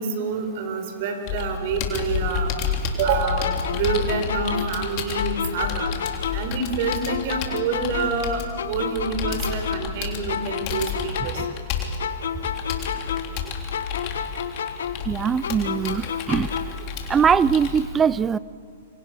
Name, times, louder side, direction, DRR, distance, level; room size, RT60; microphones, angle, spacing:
voice 1, 0.0-2.5 3.0-5.9 6.3-8.4 8.7-11.4, right 5 dB, 55° right, 6 dB, 4.7 m, -27 dB
Computer keyboard, 1.3-17.8, left 7 dB, 40° left, 3.5 m, -30 dB
sound 1, 3.4-6.6 6.9-10.0 10.3-13.4 13.7-16.9, left 8 dB, 75° left, 1.6 m, -31 dB
voice 2, 15.1-16.5 17.1-18.4, right 7 dB, 20° right, 20 dB, 0.5 m, -21 dB
27.5 x 25.5 x 6.2 m, 2.4 s
hypercardioid pair, 125°, 0 cm